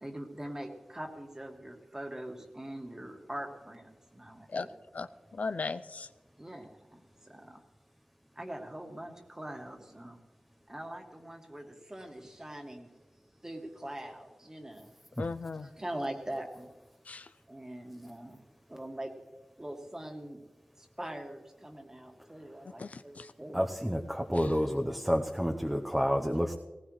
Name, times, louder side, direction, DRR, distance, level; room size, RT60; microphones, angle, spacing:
voice 1, 0.0-4.7 6.4-7.6 8.4-10.2 10.7-12.9 13.4-14.9 15.6-16.7 17.5-18.4 18.7-19.1 19.6-20.4 20.8-23.6, right 1 dB, 20° right, 3 dB, 2.0 m, -42 dB
voice 2, 4.9-6.1 15.2-15.7 17.1-17.3 22.8-23.3 24.3-24.5, left 4 dB, 70° left, 11 dB, 0.5 m, -37 dB
voice 3, 23.5-26.5, equal, 5° right, 2 dB, 0.9 m, -29 dB
18.5 x 18.0 x 3.3 m, 1.2 s
wide cardioid pair, 90°, 3 cm